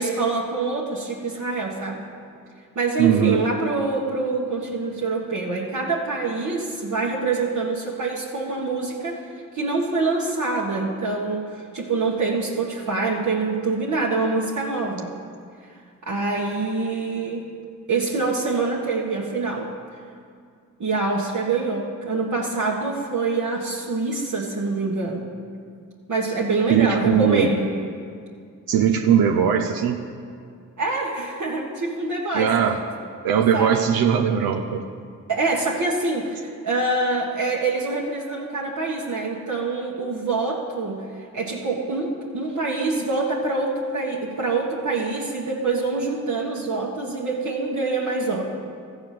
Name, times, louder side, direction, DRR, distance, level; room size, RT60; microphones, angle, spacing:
voice 1, 0.0-2.0 2.7-9.3 9.5-15.1 16.0-17.4 17.9-19.7 20.8-25.3 26.1-27.7 30.8-32.5 33.5-33.7 35.3-48.5, right 3 dB, 55° right, -4 dB, 1.4 m, -25 dB
voice 2, 3.0-3.4 26.7-27.5 28.7-30.0 32.3-32.8 33.2-34.8, right 8 dB, 80° right, 4 dB, 0.7 m, -19 dB
13.5 x 4.8 x 7.4 m, 2.3 s
cardioid pair, 55°, 35 cm